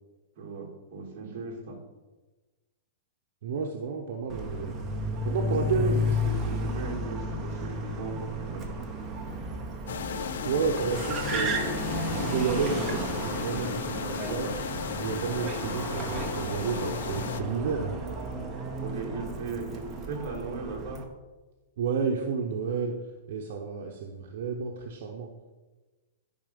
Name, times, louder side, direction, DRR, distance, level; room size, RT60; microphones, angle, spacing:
voice 1, 0.4-1.8 5.4-8.7 18.8-21.1, right 4 dB, 35° right, -1 dB, 2.2 m, -37 dB
voice 2, 3.4-4.7 5.2-6.0 10.4-11.6 12.0-14.5 15.0-18.0 21.8-23.0 23.3-25.3, right 6 dB, 55° right, 1 dB, 1.0 m, -31 dB
Car, 4.3-21.0, equal, 10° right, 1.0 m, -33 dB
sound 1, 9.9-17.4, left 7 dB, 70° left, 0.6 m, -35 dB
13.0 x 5.6 x 5.3 m, 1.2 s
supercardioid pair, 175°, 0 cm